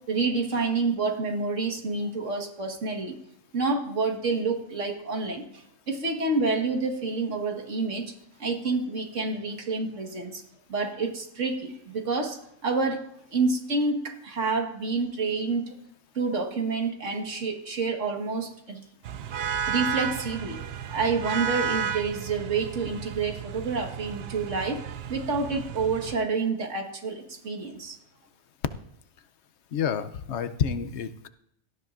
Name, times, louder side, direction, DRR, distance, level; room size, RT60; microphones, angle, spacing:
voice 1, 0.1-3.1 3.5-5.4 5.9-8.0 8.4-10.4 10.7-12.4 12.6-13.0 13.3-15.7 16.2-18.8 19.7-20.6 20.9-24.8 25.1-28.0, right 4 dB, 80° right, 3 dB, 1.9 m, -28 dB
sound 1, 19.0-26.2, right 7 dB, 65° right, 0.8 m, -33 dB
voice 2, 29.7-31.3, left 7 dB, 70° left, 11 dB, 0.9 m, -29 dB
17.5 x 13.0 x 2.5 m, 0.73 s
omnidirectional pair, 1.2 m